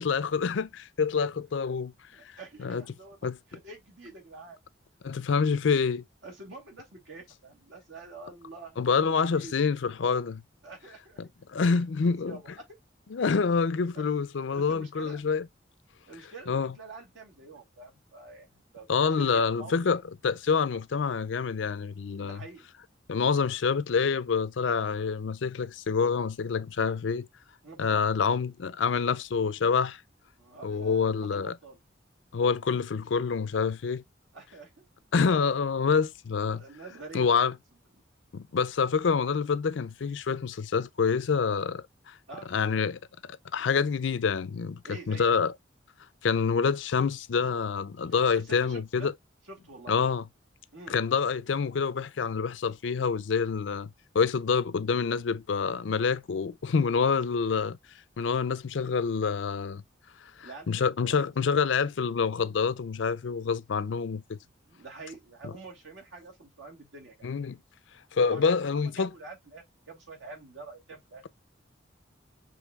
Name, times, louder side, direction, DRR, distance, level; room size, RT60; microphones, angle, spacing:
voice 1, 0.0-1.9 2.6-2.8 3.2-3.4 5.0-6.0 8.8-10.4 11.2-12.4 13.1-15.4 16.5-16.7 18.9-22.4 23.1-27.3 27.8-30.0 30.6-31.5 32.3-34.0 35.1-36.6 37.1-37.5 38.3-42.1 42.5-44.8 45.1-45.5 46.2-49.1 49.9-50.2 50.9-57.8 58.2-59.8 60.4-64.4 65.4-65.5 67.2-67.6 68.1-69.1, left 5 dB, 75° left, 0.5 m, -27 dB
voice 2, 2.1-4.6 6.2-9.5 10.6-11.2 11.9-12.6 13.9-14.2 14.5-15.2 16.1-19.9 22.2-22.7 27.6-28.0 30.4-31.8 34.3-34.8 36.5-37.5 37.9-38.0 42.3-42.5 44.8-45.4 48.3-49.1 49.4-50.0 50.7-51.0 60.3-61.2 64.4-67.3 68.1-71.2, right 3 dB, 80° right, 2.4 m, -47 dB
6.3 x 3.1 x 2.3 m
head